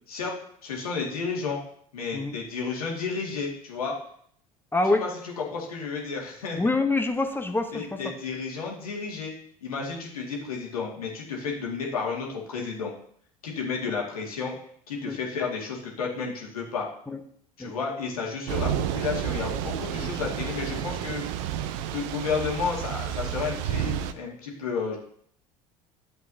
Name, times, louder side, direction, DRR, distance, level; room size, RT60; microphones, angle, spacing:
voice 1, 0.6-1.6 1.9-3.9 5.0-5.1 5.5-6.6 7.7-9.3 9.6-12.9 13.4-14.6 14.9-16.9 17.6-21.3 21.9-25.0, left 5 dB, 75° left, -1 dB, 2.1 m, -32 dB
voice 2, 4.7-5.1 6.6-8.0 15.1-15.2 17.1-17.2 17.6-17.7 20.0-20.1, left 2 dB, 10° left, 7 dB, 1.0 m, -26 dB
Thunder / Rain, 18.5-24.1, right 10 dB, 60° right, 0.6 m, -30 dB
11.0 x 7.7 x 2.8 m, 0.63 s
figure-of-eight pair, 65°, 19 cm